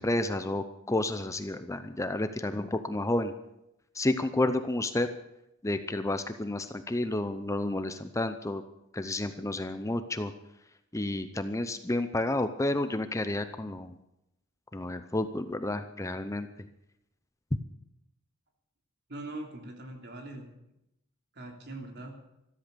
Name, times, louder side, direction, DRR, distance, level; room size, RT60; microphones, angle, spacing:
voice 1, 0.0-3.3 3.9-5.1 5.6-8.6 8.9-10.3 10.9-13.9 14.7-16.5, left 1 dB, 15° left, 10 dB, 0.6 m, -30 dB
voice 2, 19.1-20.5 21.3-22.1, right 2 dB, 55° right, 3 dB, 3.1 m, -41 dB
14.0 x 13.5 x 6.8 m, 0.84 s
head